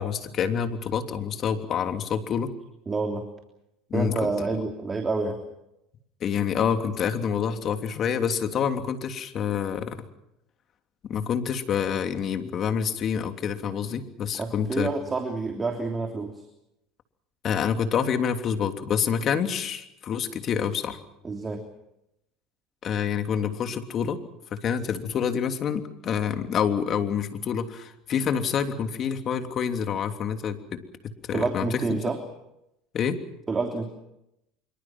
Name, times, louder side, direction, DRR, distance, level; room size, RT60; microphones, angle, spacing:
voice 1, 0.0-2.5 3.9-4.5 6.2-10.0 11.0-14.9 17.4-21.0 22.8-24.2 24.5-30.8 31.3-32.0 32.9-33.2, left 7 dB, 45° left, 7 dB, 3.1 m, -27 dB
voice 2, 2.9-3.3 3.9-5.4 14.4-16.4 21.2-21.7 31.3-32.2 33.5-33.9, right 3 dB, 25° right, 4 dB, 3.2 m, -28 dB
26.0 x 24.0 x 6.1 m, 0.83 s
hypercardioid pair, 85°, 0 cm